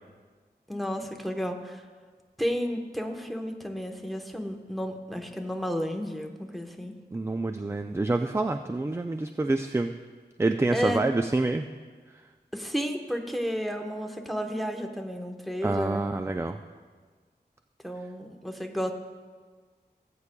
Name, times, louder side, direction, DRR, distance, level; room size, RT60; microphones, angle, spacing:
voice 1, 0.7-1.8 2.4-6.9 10.7-11.1 12.5-16.0 17.8-18.9, equal, ahead, 4 dB, 1.0 m, -32 dB
voice 2, 7.1-9.9 10.4-11.7 15.6-16.6, right 2 dB, 15° right, 7 dB, 0.3 m, -27 dB
19.0 x 8.3 x 2.2 m, 1.5 s
wide cardioid pair, 60°, 18 cm